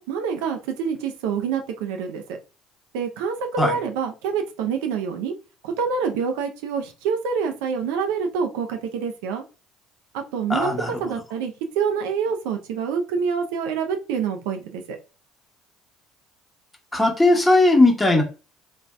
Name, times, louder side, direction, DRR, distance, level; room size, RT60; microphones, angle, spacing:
voice 1, 0.0-2.2 2.9-3.4 3.6-5.3 5.6-9.4 10.1-15.0, right 6 dB, 80° right, 5 dB, 0.5 m, -26 dB
voice 2, 10.5-11.0 16.9-18.2, left 2 dB, 10° left, 1 dB, 1.0 m, -18 dB
2.5 x 2.2 x 3.2 m, 0.33 s
hypercardioid pair, 65°, 0 cm